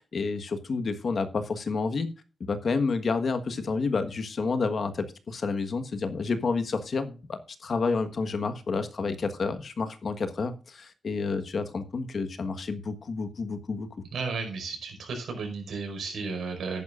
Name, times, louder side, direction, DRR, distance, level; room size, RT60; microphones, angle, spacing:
voice 1, 0.0-2.1 2.4-13.9, left 4 dB, 50° left, 9 dB, 1.4 m, -29 dB
voice 2, 14.1-16.8, right 4 dB, 85° right, 3 dB, 5.0 m, -33 dB
14.0 x 11.0 x 2.5 m, 0.33 s
wide cardioid pair, 150°, 0 cm